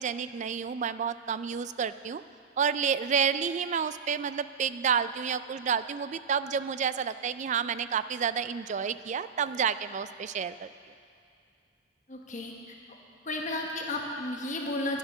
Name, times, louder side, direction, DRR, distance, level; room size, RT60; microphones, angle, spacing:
voice 1, 0.0-2.2 2.6-10.7, right 7 dB, 40° right, 14 dB, 0.3 m, -30 dB
voice 2, 12.1-12.5 13.2-15.0, left 2 dB, 40° left, 0 dB, 1.3 m, -33 dB
11.0 x 10.5 x 6.2 m, 2.3 s
head